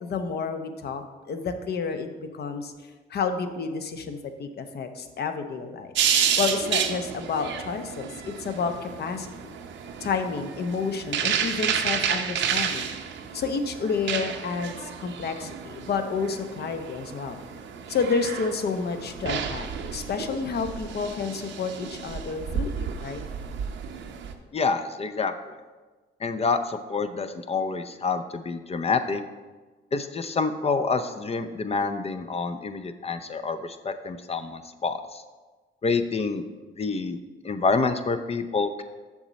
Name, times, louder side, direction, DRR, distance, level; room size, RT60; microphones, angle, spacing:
voice 1, 0.0-2.1 2.3-2.7 3.1-5.9 6.4-9.5 10.0-12.9 13.3-17.4 17.9-23.2, left 5 dB, 55° left, 7 dB, 0.8 m, -30 dB
sound 1, 5.9-24.3, right 7 dB, 70° right, 0.7 m, -31 dB
voice 2, 24.5-25.3 26.2-29.2 29.9-35.2 35.8-36.4 36.8-37.2 37.4-38.8, left 4 dB, 30° left, 8 dB, 0.5 m, -27 dB
7.2 x 6.3 x 4.1 m, 1.3 s
cardioid pair, 90°, 20 cm